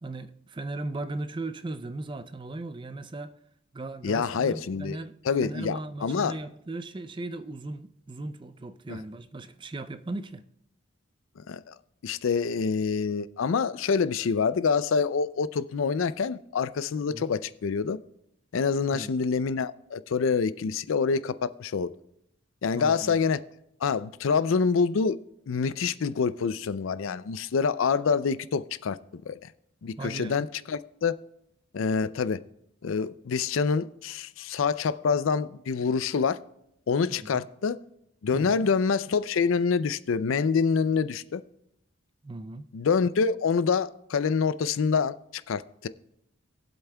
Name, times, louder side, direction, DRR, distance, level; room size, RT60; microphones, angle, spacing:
voice 1, 0.0-3.3 3.7-10.4 17.1-17.3 18.9-19.1 22.7-23.3 30.0-30.5 37.1-37.5 38.3-38.7 42.2-42.7, right 2 dB, 25° right, 0.4 m, -37 dB
voice 2, 4.0-5.0 5.3-6.4 8.9-9.0 11.5-11.8 12.0-18.0 18.5-21.9 22.6-23.4 23.8-25.2 25.5-29.4 29.8-31.1 31.7-32.4 32.8-36.4 36.9-37.8 38.2-41.4 42.7-45.9, left 5 dB, 75° left, 0.4 m, -26 dB
21.5 x 8.0 x 2.3 m
head